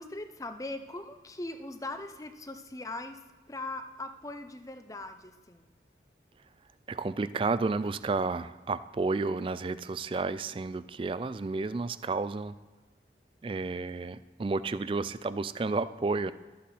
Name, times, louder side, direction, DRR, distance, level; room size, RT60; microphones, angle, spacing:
voice 1, 0.0-5.7, left 2 dB, 20° left, 8 dB, 0.6 m, -40 dB
voice 2, 6.9-12.5 13.4-16.3, right 3 dB, 30° right, 15 dB, 0.3 m, -31 dB
12.5 x 8.3 x 4.3 m, 1.3 s
head